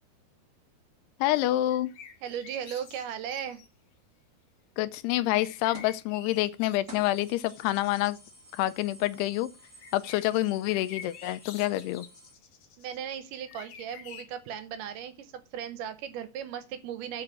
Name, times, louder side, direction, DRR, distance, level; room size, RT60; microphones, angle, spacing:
voice 1, 1.2-1.9 4.8-8.2 8.5-9.5 9.9-12.1, left 15 dB, 85° left, 2.6 m, -27 dB
sound 1, 1.7-3.7 5.1-8.3 9.8-13.0 13.5-14.3, left 8 dB, 65° left, 1.8 m, -49 dB
voice 2, 2.2-3.6 12.8-17.2, right 9 dB, 80° right, 1.9 m, -37 dB
sound 2, 5.7-6.0 6.4-6.5 6.9-12.3, right 2 dB, 45° right, 1.4 m, -52 dB
7.9 x 4.8 x 7.2 m
omnidirectional pair, 4.7 m